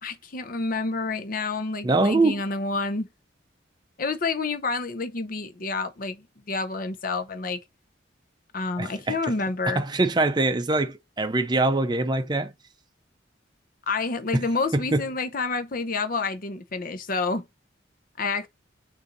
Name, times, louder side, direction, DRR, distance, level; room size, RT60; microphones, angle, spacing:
voice 1, 0.0-3.1 4.0-7.6 8.5-9.8 13.9-17.5 18.2-18.5, left 3 dB, 50° left, 0.7 m, -29 dB
voice 2, 1.8-2.4 8.8-9.2 9.7-12.5 14.3-14.4 14.7-15.0, right 2 dB, 25° right, 0.5 m, -23 dB
6.9 x 2.7 x 5.2 m
head